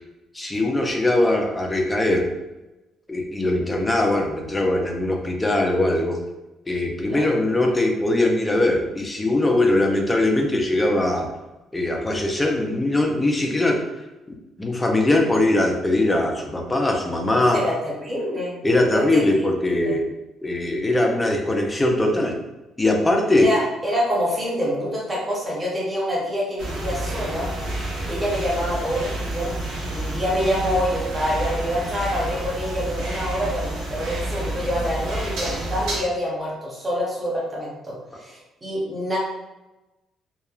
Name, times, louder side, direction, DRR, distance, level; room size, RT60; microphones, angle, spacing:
voice 1, 0.3-2.3 3.1-6.2 6.7-11.3 11.7-13.8 14.3-17.6 18.6-20.0 20.4-22.4 22.8-23.5, left 1 dB, 10° left, 1 dB, 0.3 m, -21 dB
voice 2, 17.3-18.5 18.9-20.0 23.3-27.5 28.1-29.5 29.9-39.2, equal, 15° right, -5 dB, 0.7 m, -26 dB
sound 1, 26.6-36.0, right 1 dB, 85° right, 1.0 m, -29 dB
3.0 x 2.2 x 2.3 m, 1.0 s
cardioid pair, 175°, 0 cm